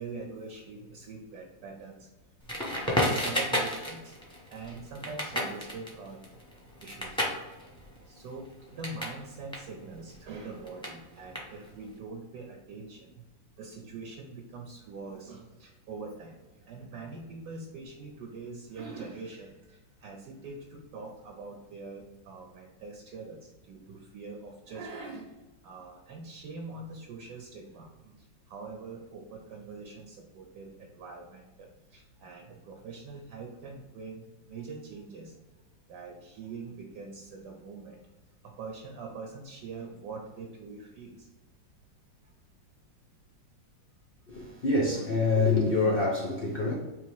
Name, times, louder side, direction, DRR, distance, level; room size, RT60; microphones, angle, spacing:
voice 1, 0.0-2.1 2.5-4.2 4.5-6.3 6.8-7.6 8.1-13.2 13.6-25.3 25.6-35.4 35.9-38.0 38.4-41.3 46.6-46.7, right 4 dB, 70° right, 1 dB, 1.1 m, -43 dB
Crackle, 2.5-9.2 9.5-11.9, equal, 5° left, 0.5 m, -32 dB
voice 2, 44.3-46.7, left 3 dB, 85° left, -2 dB, 0.5 m, -26 dB
4.0 x 2.9 x 4.6 m, 1.1 s
omnidirectional pair, 2.1 m